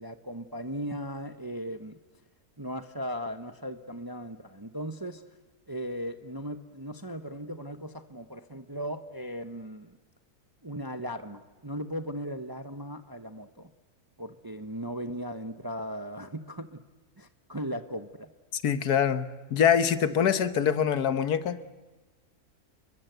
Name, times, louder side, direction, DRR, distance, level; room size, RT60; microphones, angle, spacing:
voice 1, 0.0-2.0 2.6-5.2 5.7-10.0 10.6-13.7 14.2-16.8 17.2-18.3 20.1-20.2, equal, 15° right, 9 dB, 0.9 m, -37 dB
voice 2, 18.5-21.6, left 8 dB, 80° left, 12 dB, 1.7 m, -24 dB
29.5 x 23.0 x 8.0 m, 1.2 s
omnidirectional pair, 1.6 m